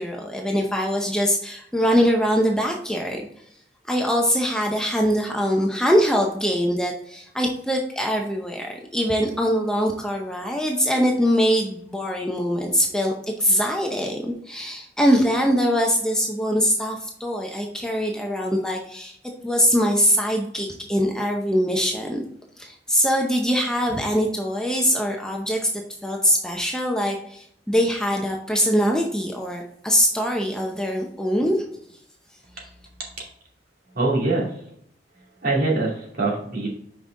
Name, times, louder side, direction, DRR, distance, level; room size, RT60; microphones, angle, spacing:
voice 1, 0.0-3.2 3.9-13.1 13.4-19.2 19.4-22.2 22.6-31.6, equal, 5° left, 1 dB, 0.7 m, -22 dB
voice 2, 34.0-34.5 35.4-36.7, right 2 dB, 55° right, -4 dB, 2.5 m, -23 dB
5.8 x 5.3 x 3.7 m, 0.69 s
head